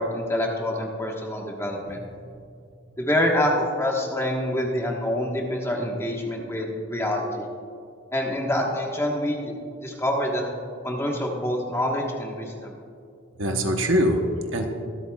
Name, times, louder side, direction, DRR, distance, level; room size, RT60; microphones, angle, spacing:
voice 1, 0.0-2.0 3.0-7.5 8.1-9.5 9.8-10.4 10.8-12.7, left 1 dB, 15° left, 0 dB, 1.3 m, -26 dB
voice 2, 1.9-2.5 2.9-3.0 13.3-14.6, equal, 60° right, 4 dB, 1.0 m, -25 dB
24.0 x 8.2 x 2.3 m, 2.4 s
head